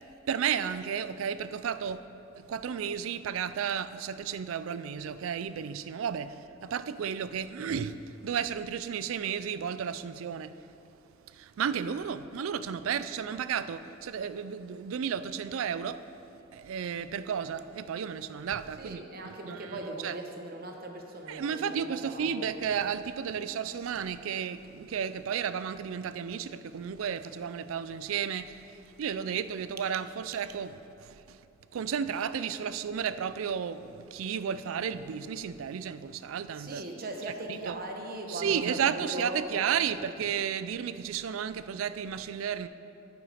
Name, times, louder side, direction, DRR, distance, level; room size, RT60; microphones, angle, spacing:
voice 1, 0.3-2.0 2.3-8.0 8.2-10.6 11.3-16.0 16.5-20.2 21.3-30.7 31.0-31.4 31.7-36.8 37.5-37.8 38.3-42.7, right 7 dB, 75° right, 13 dB, 0.4 m, -33 dB
voice 2, 18.8-22.5 36.5-40.0, right 1 dB, 45° right, 2 dB, 0.9 m, -39 dB
8.9 x 7.0 x 4.9 m, 2.8 s
head